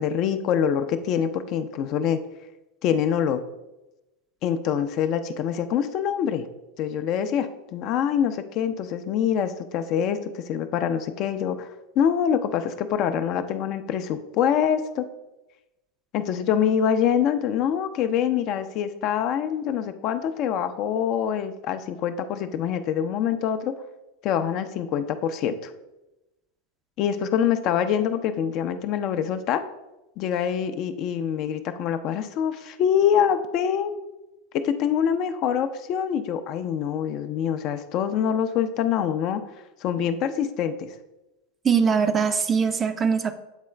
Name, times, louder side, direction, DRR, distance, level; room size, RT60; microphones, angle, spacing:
voice 1, 0.0-2.2 2.8-3.4 4.4-6.5 6.8-11.7 12.0-15.1 16.1-23.7 24.2-25.7 27.0-29.6 30.2-34.0 34.6-39.4 39.8-40.9, left 8 dB, 50° left, 9 dB, 0.4 m, -25 dB
voice 2, 41.6-43.3, right 6 dB, 25° right, 9 dB, 0.5 m, -22 dB
8.1 x 3.7 x 3.2 m, 0.99 s
hypercardioid pair, 90°, 0 cm